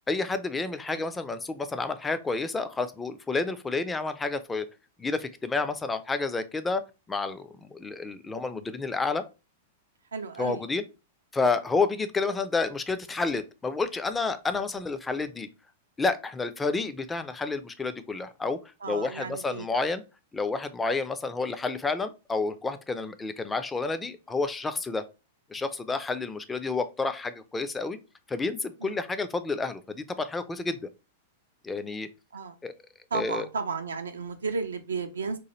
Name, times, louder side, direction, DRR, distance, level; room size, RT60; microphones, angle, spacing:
voice 1, 0.1-4.7 5.0-6.8 7.1-9.2 10.4-10.8 11.3-15.5 16.0-18.6 18.9-20.0 20.3-25.0 25.5-28.0 28.3-30.9 31.6-32.1 32.6-32.7 33.1-33.5, left 3 dB, 15° left, 10 dB, 0.3 m, -30 dB
voice 2, 10.1-10.7 11.7-11.8 18.8-19.7 28.8-29.0 32.3-32.5 33.1-35.4, right 4 dB, 75° right, 7 dB, 0.3 m, -33 dB
3.0 x 2.2 x 2.9 m, 0.29 s
figure-of-eight pair, 95°, 0 cm